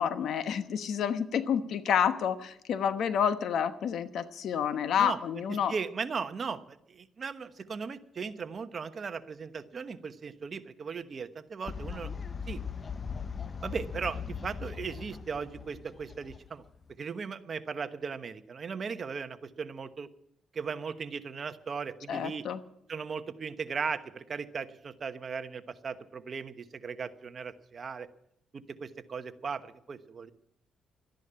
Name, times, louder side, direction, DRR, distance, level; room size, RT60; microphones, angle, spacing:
voice 1, 0.0-5.7 22.1-22.6, left 8 dB, 70° left, 11 dB, 1.1 m, -29 dB
voice 2, 5.7-12.1 12.5-12.6 13.6-16.6 17.0-20.1 20.5-22.4 22.9-28.1 28.5-30.3, right 5 dB, 45° right, 10 dB, 1.1 m, -37 dB
Fowl, 11.7-16.9, left 6 dB, 35° left, 0.7 m, -39 dB
13.0 x 10.5 x 8.8 m, 0.76 s
cardioid pair, 90°, 0 cm